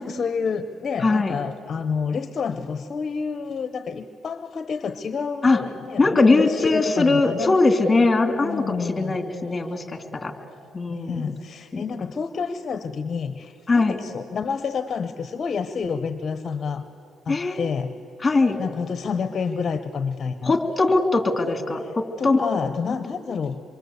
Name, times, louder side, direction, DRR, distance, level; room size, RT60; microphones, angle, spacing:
voice 1, 0.0-7.6 8.4-9.2 10.9-16.8 17.2-17.9 18.6-20.6 21.8-23.6, left 5 dB, 45° left, 10 dB, 1.0 m, -29 dB
voice 2, 1.0-1.3 5.4-5.6 6.0-10.3 10.7-11.3 11.7-11.8 13.7-14.0 17.3-17.6 18.2-18.6 20.4-22.5, left 3 dB, 25° left, 6 dB, 3.0 m, -21 dB
26.5 x 23.5 x 8.2 m, 3.0 s
cardioid pair, 90°, 0 cm